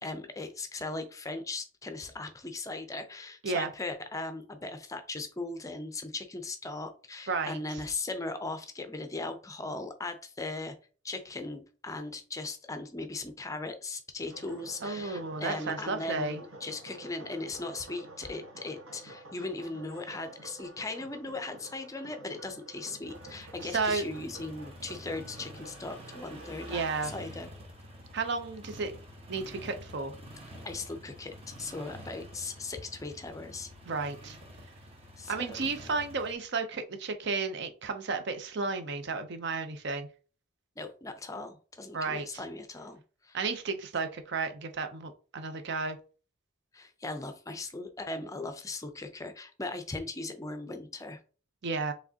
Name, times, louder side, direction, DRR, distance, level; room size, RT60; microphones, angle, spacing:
voice 1, 0.0-10.8 11.0-27.5 30.6-33.7 35.2-35.7 40.8-43.4 46.7-51.2, left 3 dB, 15° left, 7 dB, 0.5 m, -38 dB
voice 2, 7.3-7.6 14.8-16.4 23.7-24.1 26.7-27.1 28.1-28.9 29.3-30.1 33.9-34.4 35.3-40.1 41.9-42.3 43.3-46.0 51.6-51.9, right 4 dB, 55° right, 8 dB, 0.6 m, -32 dB
sound 1, 14.3-26.9, right 2 dB, 70° right, 1.1 m, -49 dB
sound 2, 23.0-36.3, equal, 30° right, 1.0 m, -48 dB
4.7 x 3.3 x 2.8 m, 0.38 s
head